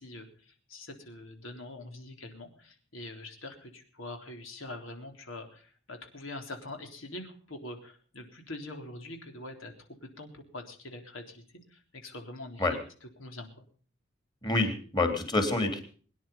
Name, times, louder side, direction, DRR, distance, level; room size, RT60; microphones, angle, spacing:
voice 1, 0.0-9.7 10.0-11.4 11.7-13.6, left 2 dB, 80° left, 4 dB, 3.7 m, -44 dB
voice 2, 14.4-15.8, left 2 dB, 20° left, 6 dB, 3.3 m, -27 dB
23.0 x 10.5 x 5.4 m, 0.43 s
head